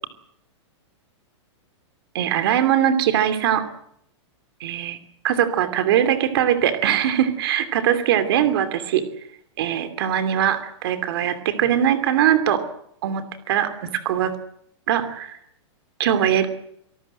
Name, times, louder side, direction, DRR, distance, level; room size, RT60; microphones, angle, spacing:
voice 1, 2.1-3.7 4.6-5.0 5.2-9.0 9.6-12.6 13.0-14.3 14.9-15.4 16.0-16.5, right 10 dB, 50° right, 10 dB, 2.8 m, -21 dB
26.5 x 19.5 x 7.7 m, 0.74 s
supercardioid pair, 165°, 15 cm